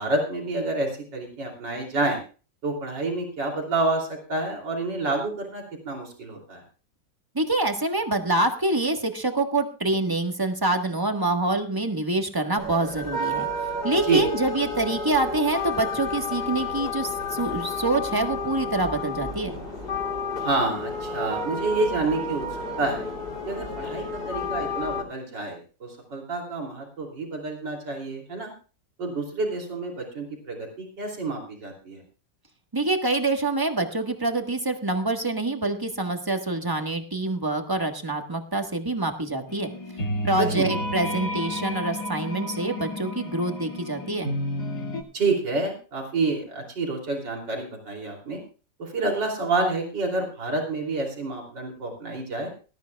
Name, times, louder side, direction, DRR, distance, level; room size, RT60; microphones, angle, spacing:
voice 1, 0.0-2.2 2.6-6.6 14.1-14.2 20.4-22.4 22.8-23.1 23.5-28.5 29.0-32.0 40.4-40.7 45.1-48.4 48.8-52.5, right 3 dB, 85° right, 0 dB, 3.7 m, -28 dB
voice 2, 7.3-13.5 13.8-19.6 32.7-39.7 40.2-44.3, right 2 dB, 15° right, 4 dB, 1.3 m, -26 dB
sound 1, 12.6-25.0, left 2 dB, 30° left, 3.0 m, -31 dB
sound 2, 39.5-45.0, left 1 dB, 65° left, 2.7 m, -31 dB
19.5 x 13.5 x 2.3 m, 0.36 s
omnidirectional pair, 1.9 m